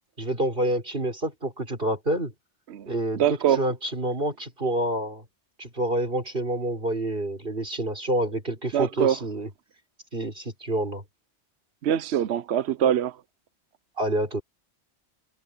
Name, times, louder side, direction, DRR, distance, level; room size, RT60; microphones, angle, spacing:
voice 1, 0.2-2.3 2.9-3.2 3.6-5.2 5.6-9.5 10.1-11.0 14.0-14.4, right 1 dB, 50° right, 5.1 m, -28 dB
voice 2, 3.1-3.6 8.7-9.2 11.8-13.2, right 9 dB, 70° right, 1.0 m, -23 dB
omnidirectional pair, 1.2 m